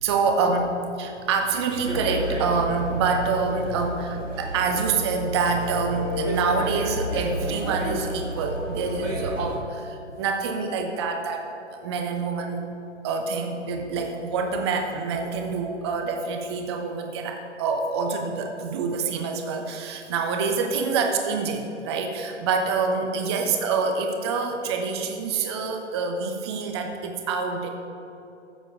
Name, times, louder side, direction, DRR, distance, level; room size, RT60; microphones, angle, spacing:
voice 1, 0.0-12.7 13.0-27.7, right 4 dB, 20° right, 4 dB, 0.9 m, -26 dB
sound 1, 1.8-9.6, right 1 dB, 90° right, 2.5 m, -31 dB
14.5 x 7.7 x 4.8 m, 2.8 s
figure-of-eight pair, 130°, 36 cm